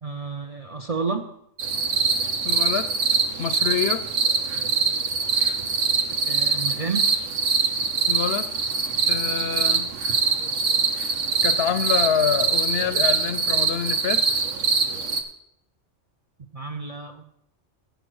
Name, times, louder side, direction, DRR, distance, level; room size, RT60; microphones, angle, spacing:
voice 1, 0.0-1.3 6.3-7.1 16.5-17.2, right 4 dB, 40° right, 5 dB, 0.5 m, -30 dB
sound 1, 1.6-15.2, right 5 dB, 85° right, 1.3 m, -23 dB
voice 2, 2.4-2.9 3.4-4.0 8.1-8.5 9.1-9.9 11.4-14.2, left 8 dB, 65° left, 12 dB, 0.7 m, -26 dB
8.2 x 7.9 x 6.1 m, 0.73 s
omnidirectional pair, 1.2 m